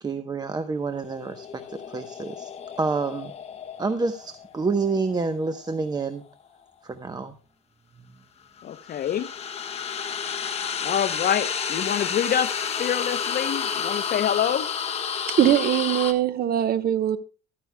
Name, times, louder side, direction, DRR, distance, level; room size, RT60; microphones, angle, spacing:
voice 1, 0.0-2.5 2.8-3.3 3.8-6.2 6.8-7.3, right 4 dB, 20° right, 0.9 m, -28 dB
sound 1, 1.0-6.1 8.6-16.1, left 7 dB, 30° left, 1.4 m, -31 dB
voice 2, 8.6-9.3 10.8-12.5 12.8-14.7, left 9 dB, 45° left, 0.7 m, -26 dB
voice 3, 15.4-17.2, right 11 dB, 50° right, 1.1 m, -21 dB
14.0 x 13.0 x 2.2 m
cardioid pair, 145°, 21 cm